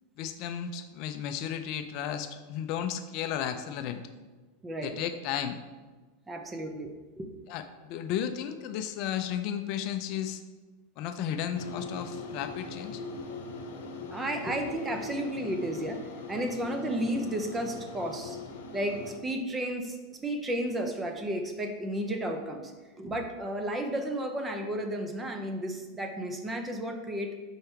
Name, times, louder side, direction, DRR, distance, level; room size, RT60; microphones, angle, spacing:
voice 1, 0.2-4.0 4.8-5.6 7.5-10.4 11.0-13.0, left 9 dB, 45° left, 9 dB, 0.4 m, -34 dB
voice 2, 4.6-5.0 6.3-7.3 14.1-18.4 18.7-20.0 20.2-22.7 23.0-27.4, right 1 dB, 15° right, 4 dB, 0.7 m, -33 dB
sound 1, 11.5-19.2, left 3 dB, 85° left, 0.8 m, -41 dB
5.3 x 4.6 x 4.4 m, 1.3 s
supercardioid pair, 145°, 0 cm